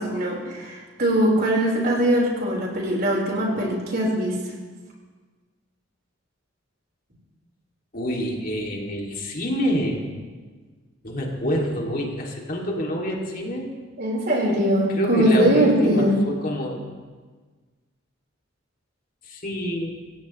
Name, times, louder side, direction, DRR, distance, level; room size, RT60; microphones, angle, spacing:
voice 1, 0.0-4.4 14.0-16.1, right 1 dB, 50° right, -2 dB, 4.4 m, -21 dB
voice 2, 7.9-10.0 11.0-13.7 15.0-16.9 19.2-20.0, equal, 45° left, -1 dB, 2.5 m, -27 dB
27.0 x 16.0 x 3.2 m, 1.4 s
head